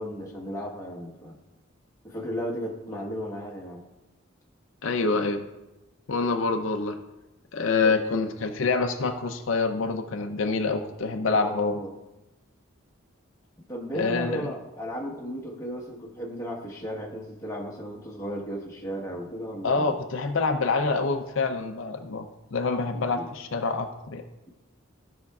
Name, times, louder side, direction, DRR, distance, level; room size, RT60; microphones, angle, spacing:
voice 1, 0.0-1.4 2.0-3.8 7.8-8.0 11.3-11.9 13.7-20.0 22.9-23.3, equal, 15° left, -3 dB, 1.2 m, -35 dB
voice 2, 4.8-5.4 6.1-7.0 7.5-11.8 13.9-14.5 19.6-24.2, left 4 dB, 70° left, 5 dB, 0.6 m, -26 dB
15.5 x 5.7 x 2.4 m, 1.0 s
head